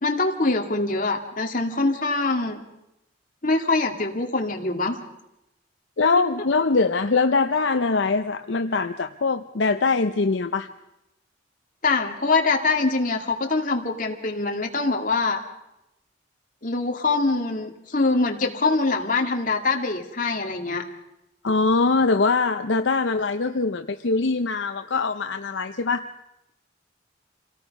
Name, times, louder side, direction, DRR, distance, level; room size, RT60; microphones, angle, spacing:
voice 1, 0.0-2.6 3.4-5.0 6.2-6.3 11.8-15.4 16.6-20.8, left 3 dB, 45° left, 2 dB, 2.3 m, -24 dB
voice 2, 6.0-10.7 21.4-26.1, left 4 dB, 70° left, 7 dB, 0.7 m, -22 dB
27.5 x 18.0 x 5.4 m, 0.90 s
head